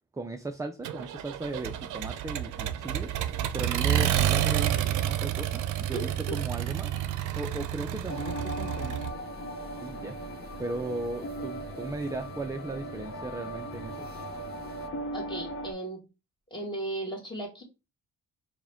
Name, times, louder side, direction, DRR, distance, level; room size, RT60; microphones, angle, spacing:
voice 1, 0.1-3.1 3.5-9.0 9.8-10.2 10.6-14.1, right 2 dB, 10° right, 0.4 m, -37 dB
Accelerating revving vroom, 0.8-9.1, right 12 dB, 80° right, 0.5 m, -29 dB
sound 1, 2.8-14.9, right 4 dB, 30° right, 0.8 m, -48 dB
voice 2, 5.9-6.4 15.1-16.0 16.5-17.6, right 2 dB, 15° left, 1.9 m, -36 dB
sound 2, 8.1-15.7, equal, 45° left, 0.8 m, -38 dB
4.8 x 2.2 x 3.5 m
cardioid pair, 90°, 30 cm